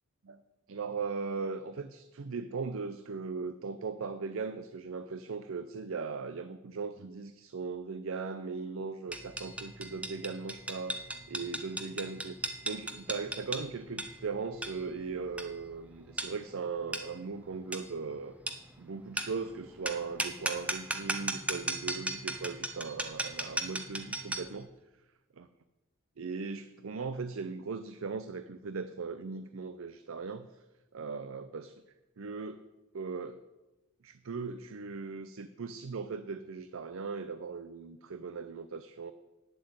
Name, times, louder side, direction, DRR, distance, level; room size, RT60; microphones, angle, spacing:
voice 1, 0.7-11.0 11.3-12.4 12.6-18.3 18.8-24.7 25.4-25.5 26.2-30.6 30.9-31.7 32.2-32.6 32.9-33.4 34.0-39.1, right 4 dB, 65° right, 11 dB, 0.5 m, -38 dB
sound 1, 9.1-24.6, right 2 dB, 5° right, 0.7 m, -37 dB
9.6 x 7.6 x 7.9 m, 1.1 s
head